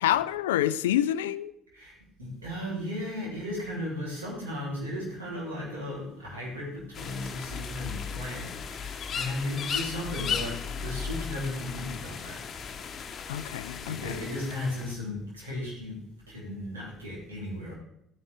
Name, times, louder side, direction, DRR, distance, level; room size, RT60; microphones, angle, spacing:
voice 1, 0.0-1.5 13.3-14.2, left 12 dB, 70° left, 0.4 m, -27 dB
voice 2, 2.2-12.4 13.8-16.0 16.3-17.7, left 1 dB, 80° right, 4.0 m, -35 dB
sound 1, 6.9-14.9, left 6 dB, 40° left, 1.0 m, -36 dB
13.5 x 9.7 x 3.6 m
figure-of-eight pair, 50°, 0 cm